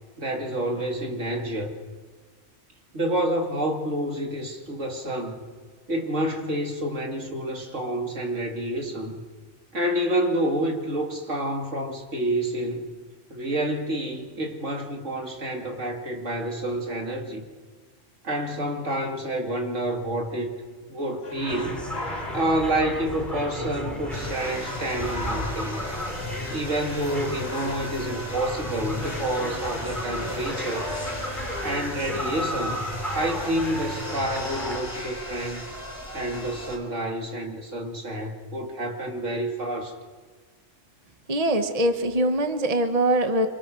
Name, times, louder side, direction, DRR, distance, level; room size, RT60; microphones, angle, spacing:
voice 1, 0.2-1.7 2.9-5.5 5.9-9.2 9.7-12.9 13.3-17.4 18.2-20.5 20.9-21.8 22.3-25.8 26.5-30.9 31.6-35.7 36.1-39.9, right 1 dB, 80° right, 2 dB, 3.0 m, -28 dB
sound 1, 21.2-31.8, left 2 dB, 55° left, 3.1 m, -38 dB
sound 2, 21.5-34.8, equal, ahead, 3.0 m, -34 dB
sound 3, 24.1-36.8, left 1 dB, 25° left, 4.3 m, -37 dB
voice 2, 41.3-43.5, right 1 dB, 30° right, 7 dB, 1.3 m, -23 dB
27.0 x 25.0 x 6.3 m, 1.5 s
omnidirectional pair, 1.3 m